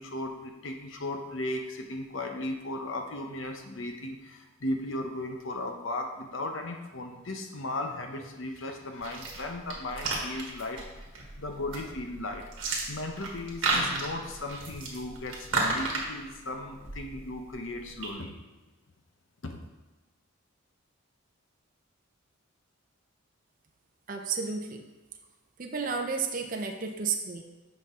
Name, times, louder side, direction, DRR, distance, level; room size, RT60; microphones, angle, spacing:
voice 1, 0.0-11.1 11.4-12.5 12.9-18.3 19.4-19.6, left 1 dB, 60° left, 4 dB, 0.8 m, -36 dB
sound 1, 9.0-18.1, right 3 dB, 60° right, 1.5 m, -34 dB
voice 2, 24.1-24.8 25.6-27.4, right 5 dB, 40° right, 3 dB, 0.6 m, -32 dB
8.0 x 5.5 x 3.7 m, 1.2 s
head